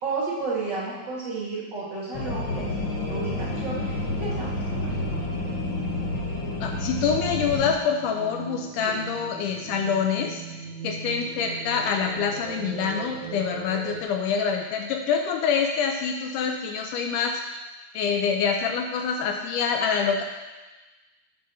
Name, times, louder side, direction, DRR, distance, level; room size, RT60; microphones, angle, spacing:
voice 1, 0.0-5.4 8.8-9.0, right 3 dB, 35° right, -7 dB, 2.4 m, -33 dB
sound 1, 2.1-7.7, left 1 dB, 55° left, 1.3 m, -29 dB
voice 2, 6.6-10.4 10.8-17.4 17.9-20.2, left 6 dB, 80° left, 3 dB, 2.0 m, -26 dB
sound 2, 7.9-14.0, right 6 dB, 80° right, 1.9 m, -38 dB
8.3 x 5.1 x 5.6 m, 1.2 s
omnidirectional pair, 3.9 m